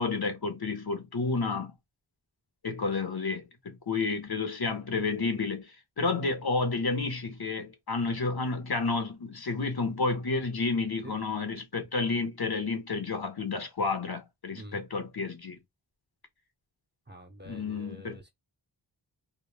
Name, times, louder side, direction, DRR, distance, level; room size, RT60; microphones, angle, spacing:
voice 1, 0.0-1.7 2.6-15.6 17.4-18.2, left 3 dB, 50° left, 0.9 m, -31 dB
voice 2, 17.1-18.3, right 1 dB, 25° right, 0.7 m, -46 dB
2.3 x 2.1 x 3.2 m
wide cardioid pair, 60°, 46 cm